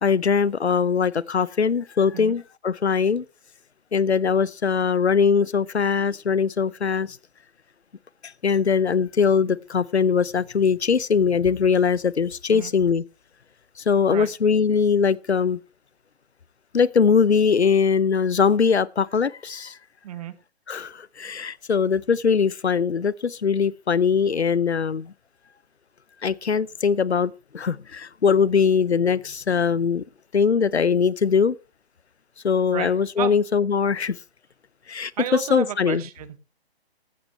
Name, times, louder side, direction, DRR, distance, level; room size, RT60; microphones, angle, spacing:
voice 1, 0.0-3.2 3.9-7.2 8.2-13.0 13.8-15.6 16.7-19.8 20.7-25.1 26.2-30.0 30.3-31.6 32.4-34.2 34.9-35.1 35.5-36.0, left 6 dB, 90° left, 0.7 m, -21 dB
voice 2, 20.0-20.3 32.7-32.9 33.2-33.4 35.2-36.4, right 10 dB, 35° right, 1.4 m, -32 dB
14.5 x 12.0 x 3.2 m
figure-of-eight pair, 140°, 32 cm